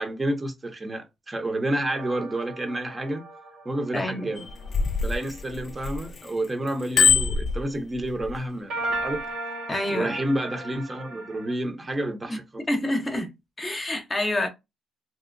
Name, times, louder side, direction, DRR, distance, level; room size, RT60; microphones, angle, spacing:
voice 1, 0.0-3.2 3.6-4.5 5.0-9.2 9.9-12.6, right 1 dB, 25° right, 0.7 m, -29 dB
sound 1, 1.9-5.4 8.7-11.5, right 2 dB, 90° right, 1.6 m, -36 dB
voice 2, 3.9-4.3 9.7-10.2 12.3-12.4 12.7-13.3 13.6-14.5, left 1 dB, 25° left, 0.7 m, -27 dB
Bicycle bell, 4.4-6.3 6.7-8.3 9.0-9.2, left 5 dB, 45° left, 0.4 m, -23 dB
3.0 x 2.8 x 2.5 m
cardioid pair, 90°, 0 cm